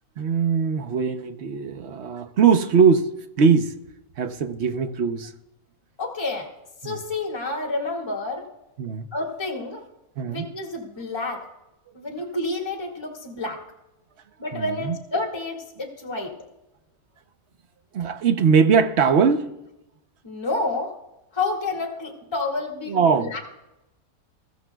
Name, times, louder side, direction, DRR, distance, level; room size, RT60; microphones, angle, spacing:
voice 1, 0.2-3.1 3.4-3.7 4.2-5.3 6.8-7.0 8.8-9.1 10.2-10.5 14.5-14.9 17.9-19.5 22.9-23.3, right 6 dB, 55° right, 0.9 m, -21 dB
voice 2, 6.0-6.5 6.8-8.4 9.1-9.8 10.2-11.4 11.9-13.6 14.4-16.3 20.2-20.9 21.3-23.4, left 2 dB, 15° left, 1.8 m, -29 dB
21.5 x 14.5 x 2.3 m
omnidirectional pair, 1.6 m